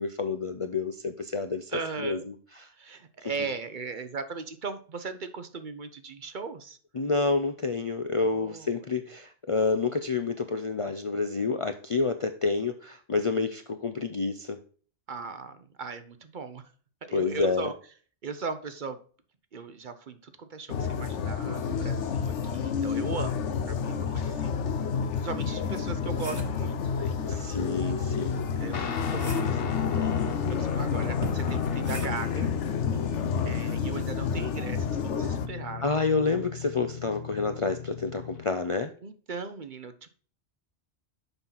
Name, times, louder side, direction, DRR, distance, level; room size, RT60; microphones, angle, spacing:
voice 1, 0.0-1.7 2.0-2.3 6.9-14.6 17.1-17.7 21.4-21.9 27.2-28.4 33.0-33.5 35.8-38.9, left 4 dB, 45° left, 0.4 m, -29 dB
voice 2, 1.7-2.3 2.8-6.8 8.3-8.8 15.1-16.6 17.0-17.7 18.2-19.0 19.5-23.3 23.7-24.6 25.2-27.6 28.6-32.5 33.4-36.0 39.0-40.1, right 5 dB, 50° right, 0.8 m, -38 dB
sound 1, 20.7-35.5, left 6 dB, 85° left, 1.1 m, -30 dB
sound 2, 24.4-24.5 25.0-26.7 28.4-29.7 31.2-32.4 34.0-34.2, right 1 dB, 15° right, 1.2 m, -40 dB
Guitar, 28.7-38.5, left 7 dB, 60° left, 1.0 m, -35 dB
7.0 x 5.7 x 3.9 m
omnidirectional pair, 1.2 m